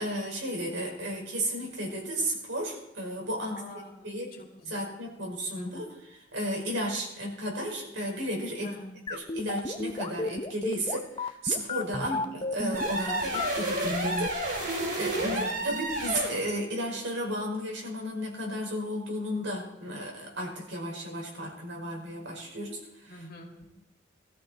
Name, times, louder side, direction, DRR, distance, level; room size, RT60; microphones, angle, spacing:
voice 1, 0.0-3.6 4.0-4.4 4.7-5.9 6.3-8.7 9.1-23.2, equal, 75° right, 0 dB, 5.3 m, -33 dB
voice 2, 3.4-4.9 5.5-5.8 8.6-9.0 11.9-12.3 15.2-15.7 23.1-23.7, left 1 dB, 50° left, 1 dB, 2.8 m, -45 dB
sound 1, 9.1-14.3, left 3 dB, 25° left, 0.7 m, -32 dB
sound 2, 12.7-16.4, right 1 dB, 50° right, 4.6 m, -31 dB
21.0 x 13.5 x 4.6 m, 0.91 s
head